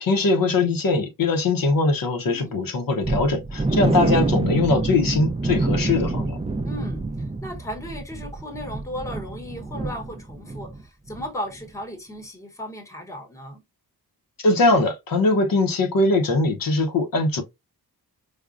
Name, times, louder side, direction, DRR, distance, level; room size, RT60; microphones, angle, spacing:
voice 1, 0.0-6.4 14.4-17.4, left 3 dB, 60° left, 0.7 m, -21 dB
voice 2, 2.3-2.6 3.7-4.1 6.6-13.6, equal, 10° left, 0.8 m, -36 dB
sound 1, 3.0-10.8 11.1-11.3 11.7-11.8, right 2 dB, 15° right, 0.3 m, -26 dB
4.8 x 2.1 x 2.3 m
wide cardioid pair, 170°, 38 cm